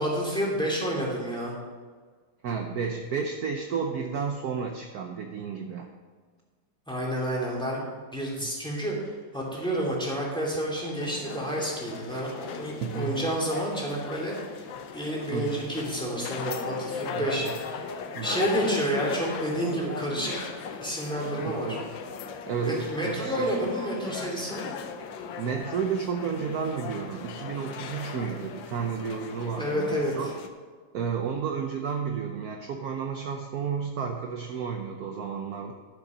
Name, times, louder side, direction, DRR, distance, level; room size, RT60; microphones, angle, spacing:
voice 1, 0.0-1.5 6.9-7.8 8.1-14.4 14.9-17.7 18.2-20.5 20.8-21.8 22.6-24.7 29.6-30.1, right 1 dB, ahead, -4 dB, 2.6 m, -29 dB
voice 2, 2.4-5.9 8.4-8.5 12.8-13.2 15.3-15.6 17.1-17.6 18.2-18.4 21.4-21.8 22.5-23.3 25.4-30.3 30.9-35.7, right 6 dB, 65° right, 4 dB, 1.1 m, -32 dB
sound 1, 11.0-30.5, left 6 dB, 85° left, 1.6 m, -38 dB
11.0 x 7.0 x 5.2 m, 1.5 s
omnidirectional pair, 2.0 m